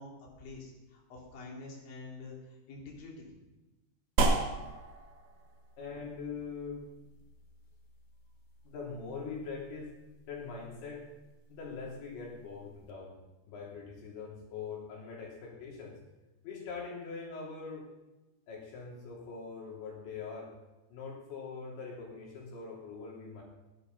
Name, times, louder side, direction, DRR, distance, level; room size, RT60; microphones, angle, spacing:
voice 1, 0.0-3.4, left 3 dB, 55° left, -3 dB, 4.5 m, -47 dB
sound 1, 4.2-12.9, right 3 dB, 60° right, 1.8 m, -37 dB
voice 2, 5.8-6.8 8.7-10.0 10.3-11.0 11.5-13.2 13.5-16.0 16.4-17.9 18.5-20.5 20.9-23.4, left 5 dB, 85° left, -3 dB, 5.4 m, -42 dB
20.0 x 11.5 x 4.1 m, 1.1 s
omnidirectional pair, 5.1 m